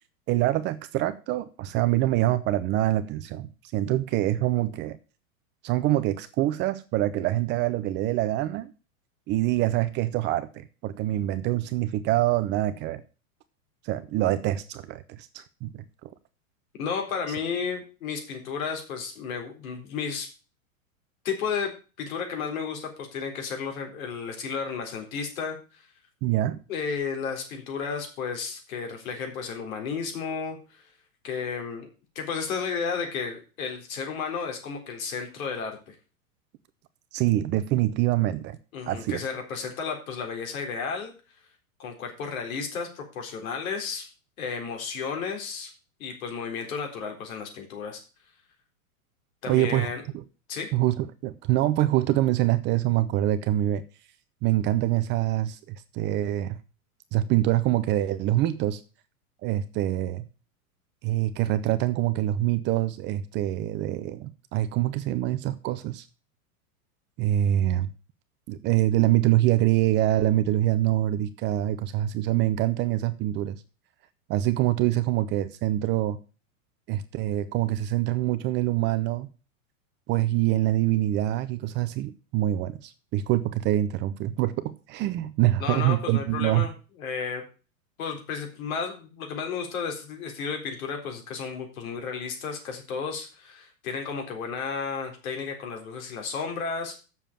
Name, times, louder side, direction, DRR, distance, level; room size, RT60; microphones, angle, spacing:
voice 1, 0.3-5.0 5.6-8.7 9.3-13.0 13.8-15.8 26.2-26.6 37.1-38.6 38.9-39.2 49.5-49.9 50.7-53.8 54.4-56.6 57.1-58.8 59.4-60.2 61.0-66.1 67.2-67.9 68.5-73.6 74.3-76.2 76.9-79.3 80.1-86.7, right 14 dB, 25° right, 0.6 m, -25 dB
voice 2, 16.7-20.3 21.2-21.7 22.0-25.9 26.7-30.8 31.2-31.9 32.2-35.9 38.7-41.1 41.8-44.1 44.4-45.7 46.0-48.0 49.4-50.0 50.5-50.7 85.6-86.7 87.0-87.4 88.0-97.0, left 5 dB, 70° left, 4.0 m, -33 dB
7.3 x 7.0 x 7.4 m
hypercardioid pair, 135°, 43 cm